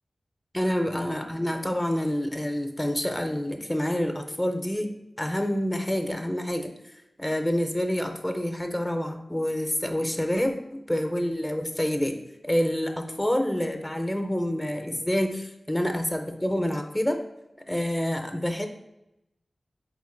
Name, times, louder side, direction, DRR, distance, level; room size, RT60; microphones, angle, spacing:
voice 1, 0.5-4.9 5.2-6.7 7.2-12.2 12.4-17.2 17.7-18.7, equal, 10° left, 5 dB, 0.5 m, -27 dB
3.8 x 3.6 x 3.8 m, 0.87 s
cardioid pair, 40°, 0 cm